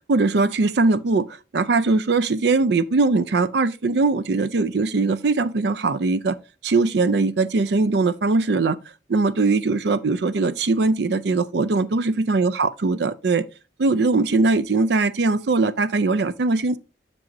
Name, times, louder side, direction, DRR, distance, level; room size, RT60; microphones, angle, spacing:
voice 1, 0.1-1.3 1.5-6.4 6.6-8.8 9.1-13.4 13.8-16.8, right 3 dB, 65° right, 0.5 m, -21 dB
7.6 x 6.2 x 2.6 m
head